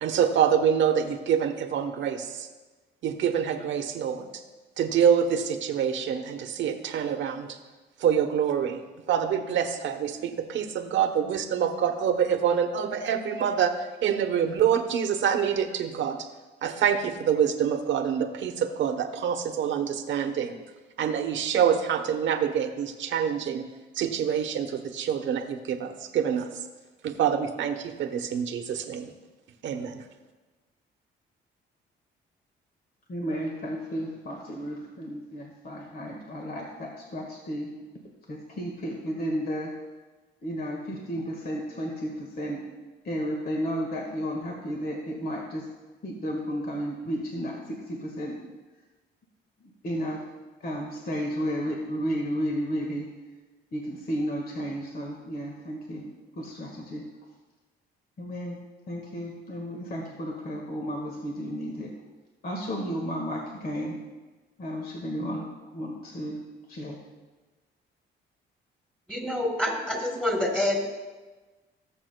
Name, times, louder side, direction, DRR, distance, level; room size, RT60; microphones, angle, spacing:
voice 1, 0.0-2.5 3.0-4.3 4.8-7.6 8.0-16.3 16.6-20.6 21.0-23.7 23.9-26.5 27.0-29.1 29.6-30.0, right 8 dB, 70° right, 7 dB, 1.0 m, -26 dB
voice 2, 33.1-37.7 38.3-39.7 40.4-42.6 43.0-45.7 46.0-48.5 49.6-50.2 50.6-53.1 53.7-56.1 56.3-57.0 58.2-58.6 58.9-61.9 62.4-64.0 64.6-66.4 66.7-67.0, equal, 50° left, 0 dB, 1.6 m, -33 dB
voice 3, 69.1-70.9, left 1 dB, 5° left, 0 dB, 2.8 m, -27 dB
18.0 x 7.4 x 2.2 m, 1.2 s
cardioid pair, 90°, 20 cm